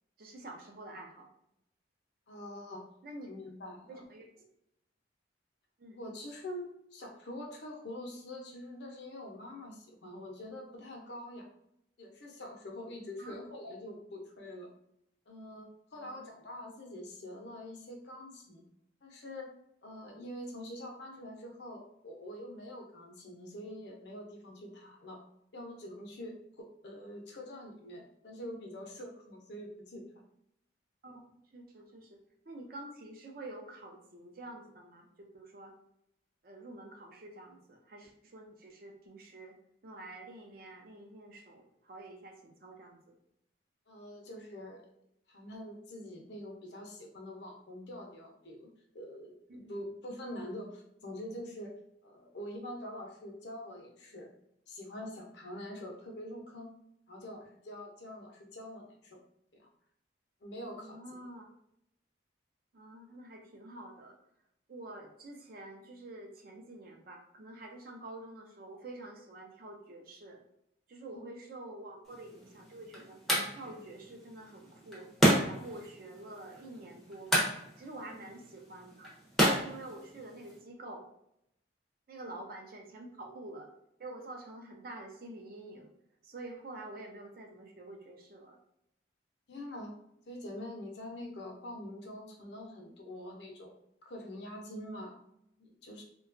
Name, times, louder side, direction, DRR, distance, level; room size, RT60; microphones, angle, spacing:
voice 1, 0.2-1.3 3.0-3.3 3.9-4.3 5.8-6.0 13.2-13.3 16.0-16.3 31.0-31.2 31.5-32.2 32.5-35.7 36.4-39.6 39.8-43.0 49.5-49.8 60.8-61.5 62.7-64.2 64.7-70.4 70.9-73.2 73.5-75.1 75.4-77.5 77.8-79.1 79.4-81.1 82.1-83.7 84.0-85.9 86.2-88.6, right 2 dB, 50° right, 2 dB, 0.4 m, -48 dB
voice 2, 2.3-2.8 3.3-4.0 5.9-11.5 12.0-14.7 15.3-18.6 19.0-19.5 19.8-25.2 25.5-30.0 43.9-44.8 45.3-51.7 52.0-54.3 54.7-56.8 57.1-59.2 59.5-59.7 60.4-61.3 71.1-71.2 82.2-82.3 89.5-89.9 90.3-95.2 95.6-96.0, left 1 dB, 65° left, 1 dB, 0.6 m, -45 dB
sound 1, 72.1-80.6, right 1 dB, ahead, 0.5 m, -32 dB
2.8 x 2.2 x 2.5 m, 0.78 s
head